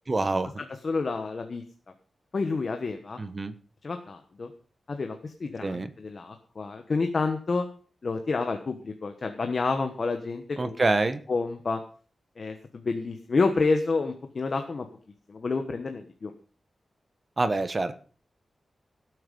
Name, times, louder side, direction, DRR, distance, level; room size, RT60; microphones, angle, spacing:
voice 1, 0.1-0.5 3.2-3.5 5.6-5.9 10.6-11.2 17.4-17.9, right 2 dB, 30° right, 11 dB, 1.1 m, -26 dB
voice 2, 0.8-1.6 2.3-3.2 3.8-4.5 4.9-7.6 8.0-10.7 11.3-11.8 12.4-14.9 15.3-16.3, left 4 dB, 45° left, 6 dB, 1.2 m, -29 dB
17.5 x 8.0 x 5.4 m, 0.41 s
wide cardioid pair, 155°, 0 cm